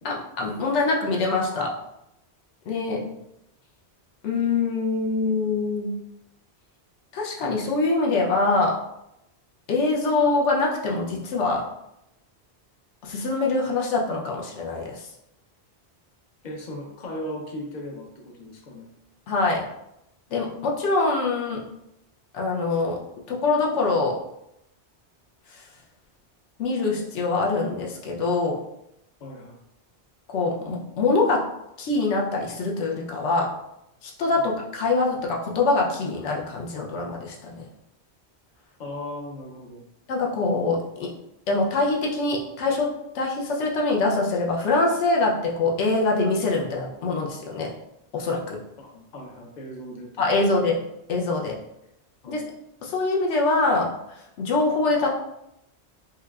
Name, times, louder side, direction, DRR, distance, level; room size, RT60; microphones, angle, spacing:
voice 1, 0.0-1.8 2.7-3.0 4.2-6.0 7.1-8.8 9.7-11.7 13.0-15.1 19.3-19.6 20.3-21.6 22.3-23.0 23.3-24.2 25.5-25.6 26.6-28.6 30.3-31.5 31.8-33.5 34.0-37.7 40.1-41.1 41.5-47.7 48.1-48.6 50.2-50.8 51.1-51.6 52.3-52.4 52.8-55.1, left 3 dB, 90° left, -1 dB, 1.0 m, -24 dB
voice 2, 16.4-18.9 29.2-29.6 34.4-34.6 38.8-39.8 48.8-50.3 50.6-50.7 51.4-51.6 52.2-52.4, left 1 dB, 50° left, 1 dB, 0.7 m, -38 dB
4.7 x 2.2 x 2.3 m, 0.83 s
omnidirectional pair, 1.2 m